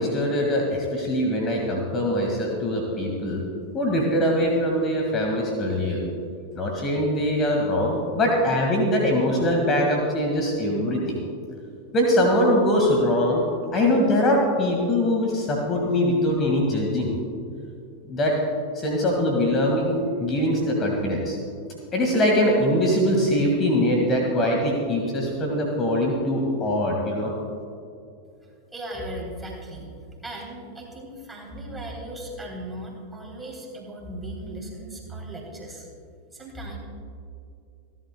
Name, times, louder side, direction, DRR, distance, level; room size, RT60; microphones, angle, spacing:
voice 1, 0.0-3.4 3.7-6.0 6.6-11.2 11.9-13.4 13.7-17.1 18.1-18.4 18.8-21.4 21.9-27.3, left 1 dB, 25° left, 0 dB, 1.8 m, -22 dB
voice 2, 28.7-29.9 30.2-35.9 36.3-36.8, right 1 dB, 10° right, -2 dB, 3.5 m, -37 dB
27.5 x 11.5 x 2.3 m, 2.4 s
figure-of-eight pair, 90°, 0 cm